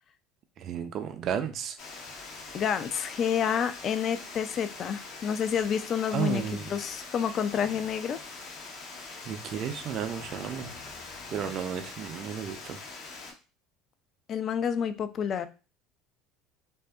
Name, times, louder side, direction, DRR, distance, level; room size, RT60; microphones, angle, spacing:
voice 1, 0.6-1.8 6.1-6.8 9.2-10.7 11.3-12.8, right 8 dB, 50° right, 7 dB, 0.4 m, -33 dB
Water, 1.8-13.3, left 3 dB, 60° left, 0.7 m, -43 dB
voice 2, 2.5-6.4 6.7-8.3 14.3-15.5, left 8 dB, 45° left, 11 dB, 0.3 m, -29 dB
2.6 x 2.4 x 2.2 m, 0.32 s
supercardioid pair, 90°, 0 cm